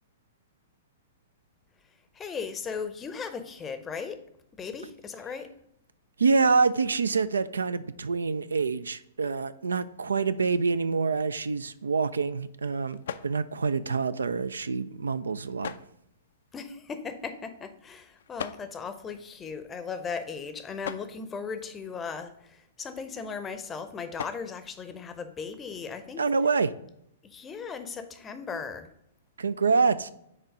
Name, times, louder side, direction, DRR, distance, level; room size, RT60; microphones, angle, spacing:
voice 1, 2.1-4.2 4.6-5.5 16.5-26.2 27.2-28.9, left 5 dB, 15° left, 9 dB, 0.7 m, -37 dB
voice 2, 6.2-13.0 13.2-15.7 26.2-26.7 29.4-30.1, right 4 dB, 70° right, 15 dB, 0.3 m, -26 dB
sound 1, 11.4-25.8, left 8 dB, 60° left, 0.4 m, -46 dB
6.4 x 4.4 x 4.8 m, 0.78 s
figure-of-eight pair, 110°, 0 cm